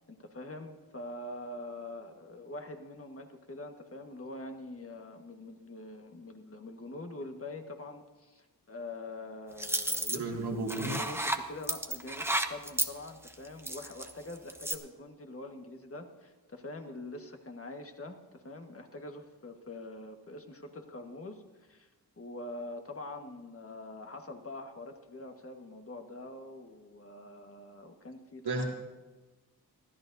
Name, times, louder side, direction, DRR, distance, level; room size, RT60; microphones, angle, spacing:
voice 1, 0.1-10.4 10.8-21.9 22.2-28.6, left 2 dB, 35° left, 4 dB, 1.6 m, -44 dB
sound 1, 9.6-10.2 10.7-11.4 11.6-14.1 14.5-14.7, right 1 dB, 5° right, 0.9 m, -32 dB
voice 2, 10.1-10.9 28.4-28.6, right 2 dB, 85° right, -2 dB, 2.7 m, -33 dB
23.5 x 14.0 x 2.7 m, 1.2 s
wide cardioid pair, 75°, 38 cm